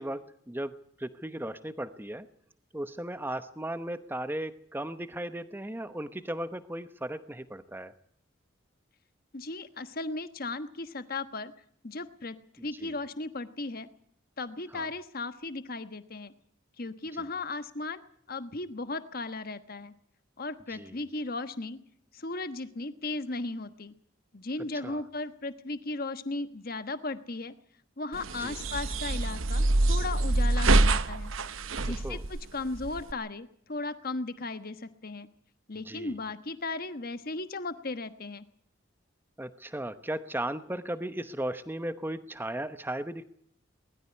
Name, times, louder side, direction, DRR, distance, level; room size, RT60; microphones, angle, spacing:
voice 1, 0.0-2.3 2.7-7.9 12.6-12.9 14.7-14.9 17.1-17.3 20.7-21.0 24.7-25.0 28.4-28.6 31.9-32.2 35.7-36.2 39.4-43.2, right 1 dB, 10° right, 11 dB, 0.9 m, -36 dB
voice 2, 9.3-11.5 11.8-12.4 12.6-13.9 14.4-16.3 16.8-18.0 18.3-19.9 20.4-21.8 22.1-23.9 24.3-27.5 28.0-31.3 31.8-35.3 35.7-38.4, left 2 dB, 50° left, 11 dB, 1.3 m, -36 dB
sound 1, 28.1-33.1, right 2 dB, 90° right, 1.0 m, -26 dB
20.5 x 13.5 x 9.7 m, 0.66 s
head